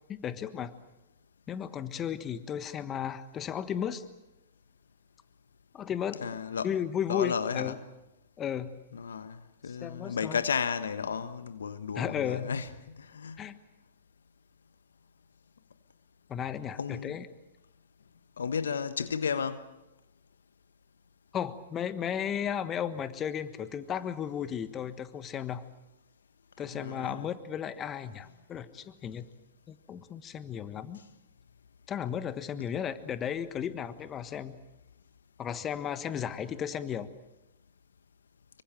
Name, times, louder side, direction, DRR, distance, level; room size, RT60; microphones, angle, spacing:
voice 1, 0.1-0.7 1.5-4.0 5.7-6.3 6.6-7.7 8.4-8.7 9.8-10.4 11.9-12.5 13.4-13.6 16.3-17.3 21.3-25.6 26.6-29.3 29.7-31.0 31.9-34.6 35.4-37.1, left 9 dB, 25° left, 1.4 m, -34 dB
voice 2, 6.2-6.7 7.1-7.8 8.9-13.5 16.8-17.2 18.4-19.7 26.6-27.3, left 6 dB, 80° left, 1.3 m, -33 dB
26.0 x 24.0 x 7.6 m
hypercardioid pair, 110°, 0 cm